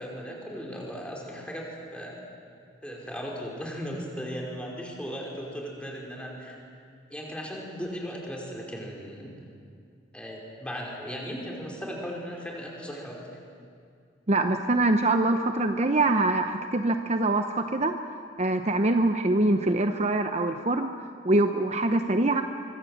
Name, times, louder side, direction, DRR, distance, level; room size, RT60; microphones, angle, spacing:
voice 1, 0.0-2.2 2.8-6.6 7.1-9.3 10.1-13.4, equal, 5° left, -2 dB, 5.0 m, -37 dB
voice 2, 14.3-18.0 18.4-20.9 21.2-22.4, right 2 dB, 40° right, 7 dB, 0.9 m, -24 dB
24.5 x 24.5 x 8.0 m, 2.3 s
head